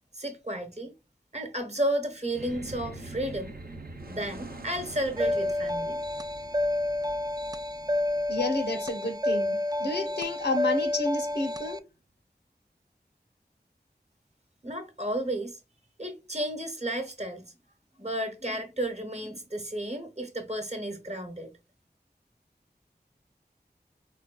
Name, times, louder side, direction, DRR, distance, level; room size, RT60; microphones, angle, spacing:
voice 1, 0.1-0.9 1.3-3.5 4.1-6.0 14.6-15.6 16.0-17.4 18.0-21.5, right 1 dB, 40° right, 1.0 m, -32 dB
sound 1, 2.3-8.9, right 2 dB, 60° right, 0.7 m, -44 dB
sound 2, 5.2-11.8, left 1 dB, 25° right, 0.3 m, -29 dB
voice 2, 8.3-11.8, left 2 dB, 80° left, 0.8 m, -30 dB
4.1 x 2.2 x 2.2 m
wide cardioid pair, 50°, 17 cm